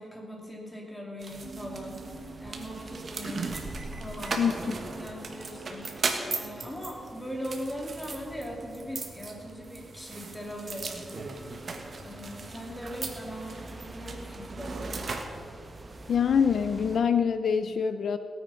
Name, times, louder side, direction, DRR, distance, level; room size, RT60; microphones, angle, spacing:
voice 1, 0.0-3.5 4.0-11.6 12.0-15.0, equal, 5° left, -1 dB, 2.7 m, -40 dB
sound 1, 1.2-16.1, right 3 dB, 45° right, 1.5 m, -38 dB
sound 2, 1.3-17.0, right 2 dB, 25° right, 1.1 m, -47 dB
sound 3, 1.4-14.8, right 3 dB, 75° right, 2.8 m, -50 dB
voice 2, 4.4-4.7 16.1-18.2, left 7 dB, 70° left, 10 dB, 0.5 m, -25 dB
17.5 x 9.3 x 5.7 m, 2.3 s
wide cardioid pair, 140°, 0 cm